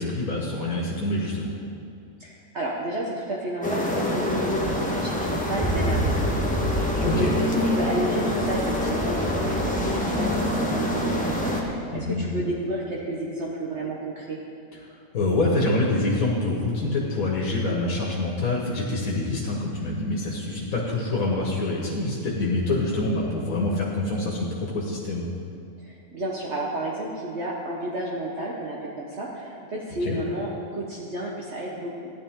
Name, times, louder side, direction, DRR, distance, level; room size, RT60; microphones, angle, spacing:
voice 1, 0.0-1.5 7.0-7.3 11.9-12.4 15.1-25.3 30.0-30.2, left 2 dB, 85° left, -4 dB, 1.9 m, -26 dB
voice 2, 2.2-14.4 25.8-32.1, right 1 dB, 55° right, -4 dB, 1.4 m, -31 dB
sound 1, 3.6-11.6, left 1 dB, 5° left, 1.2 m, -25 dB
15.0 x 11.0 x 3.7 m, 2.5 s
omnidirectional pair, 1.4 m